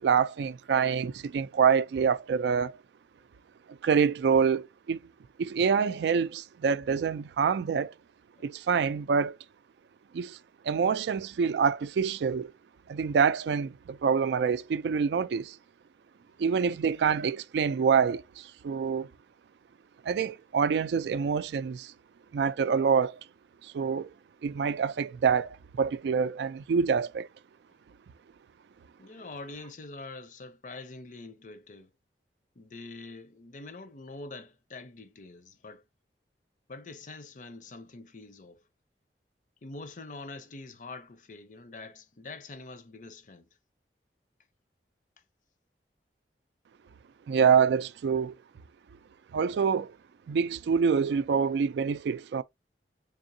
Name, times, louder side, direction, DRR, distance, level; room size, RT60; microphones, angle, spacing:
voice 1, 0.0-2.7 3.7-5.0 5.4-7.9 8.4-9.4 10.1-10.4 10.6-12.5 12.9-15.6 16.4-19.1 20.0-21.9 22.3-23.2 23.6-24.1 24.4-27.3 47.3-48.3 49.3-49.9 50.3-52.4, right 6 dB, 75° right, 0.3 m, -26 dB
voice 2, 29.0-31.9 32.6-35.8 36.7-38.6 39.6-43.5, left 3 dB, 45° left, 0.6 m, -45 dB
3.6 x 3.6 x 2.6 m
head